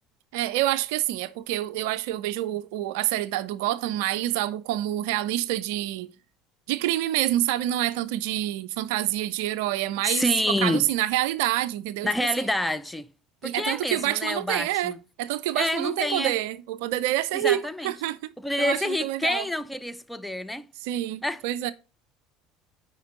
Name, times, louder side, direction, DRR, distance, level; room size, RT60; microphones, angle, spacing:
voice 1, 0.3-6.1 6.7-10.3 10.6-12.1 13.4-18.3 18.6-19.4 20.8-21.7, right 14 dB, 60° right, 0.4 m, -27 dB
voice 2, 10.0-10.9 12.0-13.1 13.4-15.0 15.5-16.3 17.3-17.9 18.4-20.7 21.2-21.4, left 1 dB, 5° left, 0.5 m, -27 dB
9.3 x 4.4 x 3.8 m
figure-of-eight pair, 65°, 0 cm